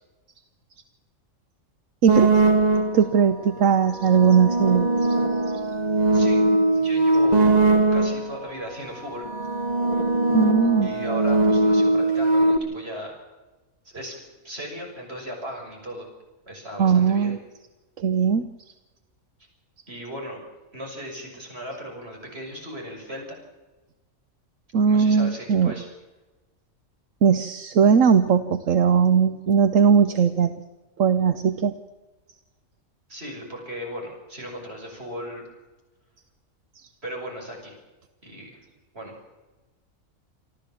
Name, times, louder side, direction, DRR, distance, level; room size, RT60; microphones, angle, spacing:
sound 1, 2.1-3.2 3.9-8.4 9.2-12.6, right 2 dB, 30° right, 1.6 m, -20 dB
voice 1, 2.9-5.2 10.3-10.9 16.8-17.4 18.0-18.5 24.7-25.7 27.2-30.5 31.0-31.8, right 6 dB, 75° right, 10 dB, 1.2 m, -19 dB
voice 2, 6.7-7.5 7.9-9.3 10.8-13.1 13.8-14.1 14.4-16.1 16.5-17.4 19.9-20.4 20.7-23.2 24.9-25.9 33.1-35.4 37.0-37.7 38.2-38.6 38.9-39.1, equal, 50° right, 1 dB, 6.8 m, -36 dB
27.5 x 13.0 x 7.2 m, 1.2 s
omnidirectional pair, 1.4 m